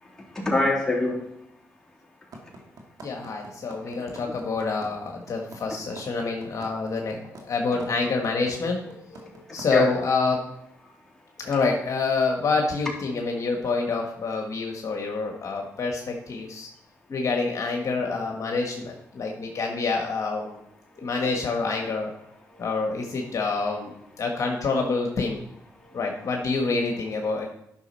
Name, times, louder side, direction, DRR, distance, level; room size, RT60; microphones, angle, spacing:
voice 1, 0.5-1.2 7.6-7.8 8.9-9.4 9.7-9.9 19.2-19.7 21.0-21.3, left 2 dB, 5° left, -5 dB, 3.5 m, -26 dB
sound 1, 2.3-10.1, right 2 dB, 70° right, 2.0 m, -43 dB
voice 2, 3.0-8.8 9.5-10.4 11.4-16.7 17.1-20.6 21.0-22.1 22.6-25.4 25.9-27.5, left 4 dB, 55° left, 1 dB, 1.4 m, -27 dB
10.5 x 6.1 x 4.3 m, 0.80 s
cardioid pair, 70°, 7 cm